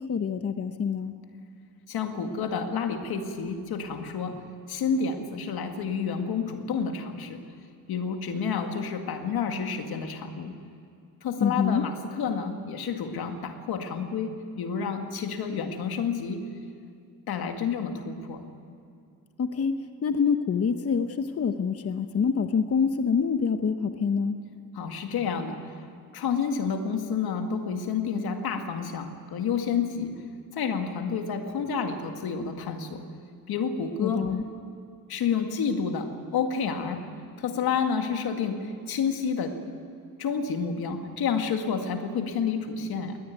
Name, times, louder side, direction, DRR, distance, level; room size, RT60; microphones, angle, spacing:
voice 1, 0.1-1.1 11.4-11.8 19.4-19.7 20.0-24.4 34.0-34.4, left 6 dB, 40° left, 9 dB, 1.0 m, -26 dB
voice 2, 1.9-4.4 4.7-7.4 7.9-10.5 11.2-16.4 17.3-18.4 24.7-25.6 26.1-30.1 30.6-33.0 33.5-34.3 35.1-37.1 37.4-39.6 40.2-43.2, left 6 dB, 80° left, 5 dB, 2.1 m, -29 dB
21.0 x 18.5 x 9.3 m, 2.4 s
cardioid pair, 115°, 37 cm